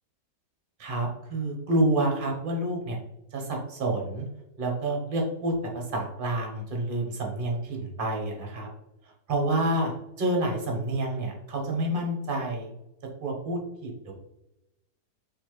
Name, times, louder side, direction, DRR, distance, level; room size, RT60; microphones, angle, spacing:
voice 1, 0.8-3.0 3.3-4.3 4.6-8.7 9.3-9.9 10.2-12.7 13.2-14.1, right 1 dB, 40° right, 0 dB, 0.9 m, -28 dB
4.3 x 3.2 x 3.2 m, 0.89 s
omnidirectional pair, 1.9 m